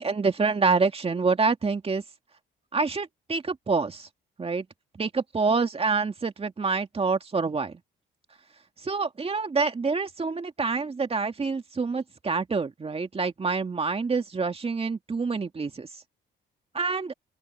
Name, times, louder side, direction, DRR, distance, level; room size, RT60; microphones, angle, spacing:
voice 1, 0.0-2.0 2.7-4.1 4.4-4.7 5.0-7.8 8.8-15.9 16.7-17.1, right 4 dB, 30° right, 2.3 m, -27 dB
open air
cardioid pair, 90°, 20 cm